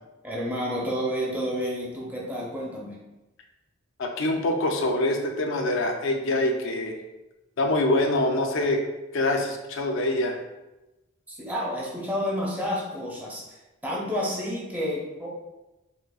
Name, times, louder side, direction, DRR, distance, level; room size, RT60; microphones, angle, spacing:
voice 1, 0.2-3.0 11.3-15.3, equal, 10° right, -5 dB, 0.7 m, -30 dB
voice 2, 4.0-7.0 7.6-8.8 9.1-10.4, left 1 dB, 65° left, 3 dB, 0.5 m, -25 dB
4.9 x 2.1 x 2.3 m, 1.0 s
head